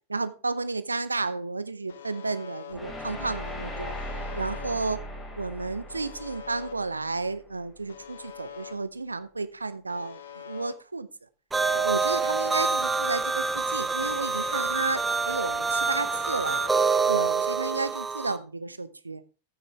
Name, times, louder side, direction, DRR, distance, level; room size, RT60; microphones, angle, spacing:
voice 1, 0.1-3.9 4.3-5.0 5.4-11.1 11.7-16.6 17.1-19.2, right 3 dB, 80° right, 14 dB, 0.7 m, -32 dB
Alarm, 1.9-2.7 3.9-4.7 5.9-6.7 7.9-8.7 9.9-10.7 11.9-12.7 13.9-14.7 15.9-16.7, left 9 dB, 65° left, 1.0 m, -44 dB
sound 1, 2.7-7.8, equal, 20° left, 4.7 m, -38 dB
sound 2, 11.5-18.4, right 4 dB, 10° right, 0.7 m, -26 dB
14.5 x 6.6 x 3.4 m, 0.34 s
figure-of-eight pair, 90°, 0 cm